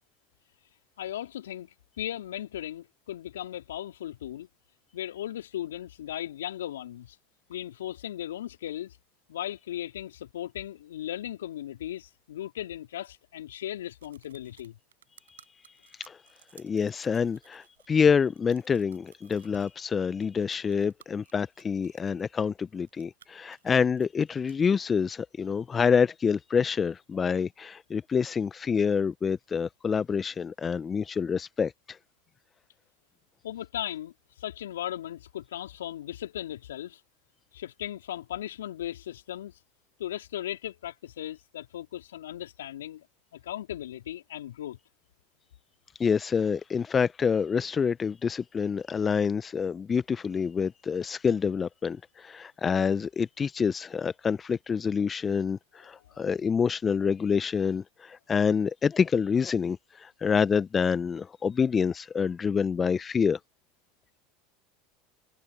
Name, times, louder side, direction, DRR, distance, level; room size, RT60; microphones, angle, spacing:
voice 1, 1.0-4.5 4.9-7.2 7.5-9.0 9.3-14.8 33.4-34.1 34.4-37.0 37.5-39.5 40.0-43.1 43.3-44.8 56.1-56.2, left 12 dB, 75° left, 4.0 m, -37 dB
sound 1, 14.0-18.0 18.3-19.7 20.2-22.2 22.7-24.6, right 9 dB, 80° right, 5.4 m, -58 dB
voice 2, 16.5-32.0 46.0-63.4, left 6 dB, 25° left, 0.8 m, -27 dB
hypercardioid pair, 80°, 0 cm